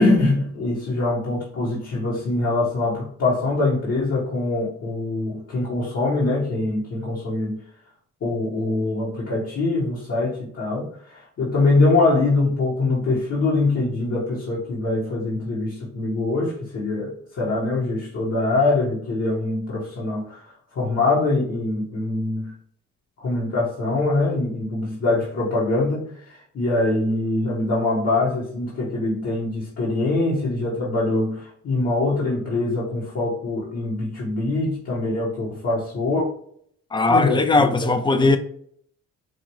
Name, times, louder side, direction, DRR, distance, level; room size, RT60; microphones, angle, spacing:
voice 1, 0.0-7.6 8.2-22.5 23.2-36.3 37.1-37.7 38.1-38.4, left 2 dB, 55° left, 1.4 m, -23 dB
voice 2, 36.9-38.4, left 3 dB, 15° left, 0.5 m, -18 dB
4.8 x 2.5 x 3.0 m
cardioid pair, 90°, 30 cm